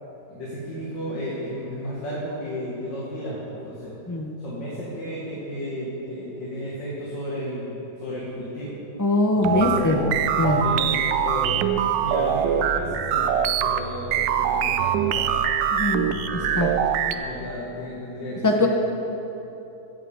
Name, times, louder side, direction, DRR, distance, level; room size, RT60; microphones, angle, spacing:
voice 1, 0.3-3.9 4.4-8.8 9.3-10.1 10.6-11.7 12.0-15.4 16.3-16.7 17.1-18.7, equal, 90° left, -7 dB, 2.6 m, -33 dB
voice 2, 9.0-10.0 10.4-10.6 15.7-16.1 16.6-16.7 18.4-18.7, left 2 dB, 30° left, 1 dB, 0.3 m, -21 dB
sound 1, 9.4-17.1, right 8 dB, 90° right, 1.3 m, -23 dB
16.0 x 10.5 x 3.6 m, 3.0 s
omnidirectional pair, 1.9 m